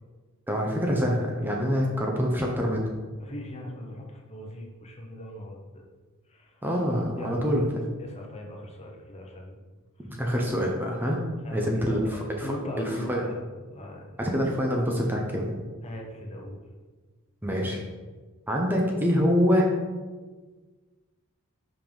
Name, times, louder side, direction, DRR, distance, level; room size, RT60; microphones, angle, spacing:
voice 1, 0.5-2.9 6.6-7.7 10.0-11.2 11.5-12.0 12.4-13.2 14.2-15.5 17.4-17.8 18.5-19.7, equal, 10° right, -1 dB, 0.8 m, -25 dB
voice 2, 3.2-5.8 6.3-6.6 7.1-9.6 10.0-10.2 11.4-13.4 13.7-14.1 15.8-16.6, left 1 dB, 30° left, 0 dB, 1.0 m, -39 dB
5.7 x 5.2 x 5.4 m, 1.4 s
head